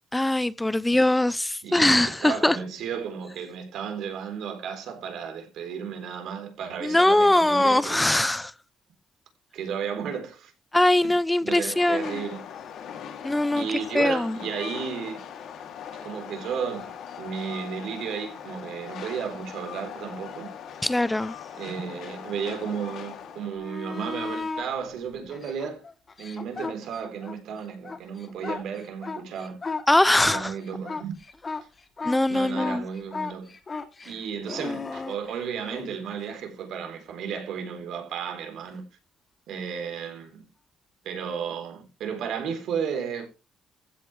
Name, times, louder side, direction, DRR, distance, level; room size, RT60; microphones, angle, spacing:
voice 1, 0.1-2.6 6.8-8.5 10.7-12.3 13.2-14.4 20.8-21.3 29.9-30.5 32.0-32.8, left 1 dB, 10° left, 0.6 m, -22 dB
voice 2, 1.6-8.1 9.5-10.5 11.0-11.1 11.4-12.4 13.5-15.2 16.0-20.5 21.5-25.8 26.2-29.6 30.2-31.1 32.3-33.6 34.0-38.8 39.5-40.5 41.0-43.3, right 7 dB, 80° right, 3.8 m, -33 dB
Train, 11.6-23.6, left 8 dB, 75° left, 2.7 m, -40 dB
sound 1, 23.4-24.7 25.3-27.4 27.7-35.9 38.7-38.8, left 4 dB, 35° left, 2.7 m, -35 dB
15.0 x 8.3 x 3.3 m
cardioid pair, 90°, 0 cm